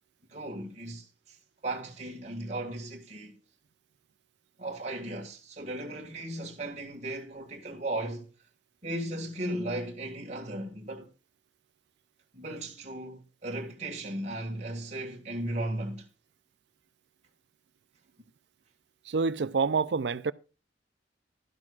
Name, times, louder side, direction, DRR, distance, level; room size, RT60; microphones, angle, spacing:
voice 1, 0.3-1.4 1.6-3.4 4.6-8.3 8.8-11.1 12.3-16.0, right 1 dB, 40° right, 1.8 m, -36 dB
voice 2, 19.1-20.3, right 4 dB, 65° right, 0.5 m, -27 dB
12.5 x 12.0 x 2.4 m
head